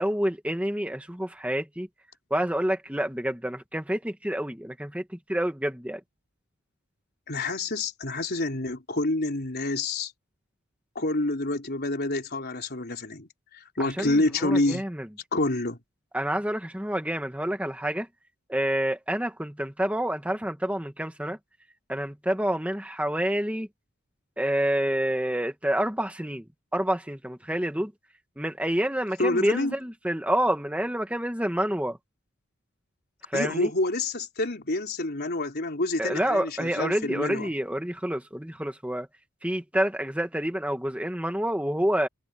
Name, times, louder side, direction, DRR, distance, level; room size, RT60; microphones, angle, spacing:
voice 1, 0.0-1.9 2.3-5.0 5.3-6.0 13.8-15.1 16.1-18.1 18.5-21.4 21.9-23.7 24.4-26.4 26.7-27.9 28.4-32.0 33.3-33.7 36.0-39.1 39.4-42.1, right 1 dB, 5° right, 1.5 m, -28 dB
voice 2, 7.3-10.1 11.0-14.9 15.3-15.8 29.2-29.8 33.3-37.5, left 2 dB, 50° left, 4.0 m, -28 dB
head